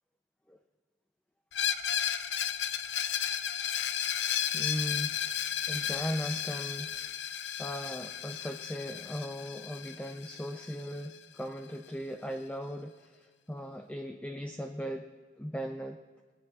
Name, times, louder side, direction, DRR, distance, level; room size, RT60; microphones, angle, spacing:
Screech, 1.5-11.2, left 9 dB, 70° left, 0.5 m, -34 dB
voice 1, 4.5-5.2 5.7-7.1 7.6-15.1 15.4-16.0, equal, 5° left, 4 dB, 0.5 m, -38 dB
21.5 x 17.5 x 2.4 m, 1.5 s
head